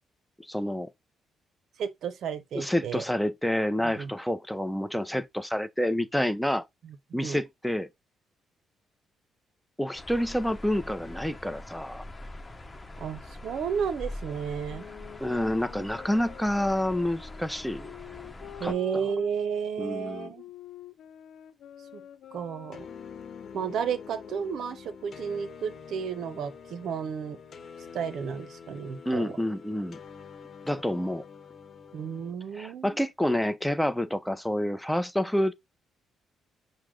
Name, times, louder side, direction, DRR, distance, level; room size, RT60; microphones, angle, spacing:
voice 1, 0.5-0.9 2.5-6.6 7.1-7.9 9.8-12.1 15.2-17.9 18.6-18.7 19.8-20.3 29.1-30.0 30.7-31.2 32.5-35.5, left 1 dB, 5° left, 0.6 m, -28 dB
voice 2, 1.8-3.0 3.8-4.1 6.8-7.4 13.0-14.9 18.6-20.4 21.9-22.0 22.3-22.9 23.5-27.4 27.9-29.3 31.9-32.9, right 7 dB, 70° right, 0.6 m, -32 dB
sound 1, 10.0-18.7, left 1 dB, 20° left, 1.1 m, -43 dB
sound 2, 14.6-19.3 19.8-24.7, left 10 dB, 70° left, 0.5 m, -47 dB
sound 3, 22.7-32.3, left 6 dB, 50° left, 1.0 m, -46 dB
6.2 x 2.1 x 3.7 m
cardioid pair, 85°, 0 cm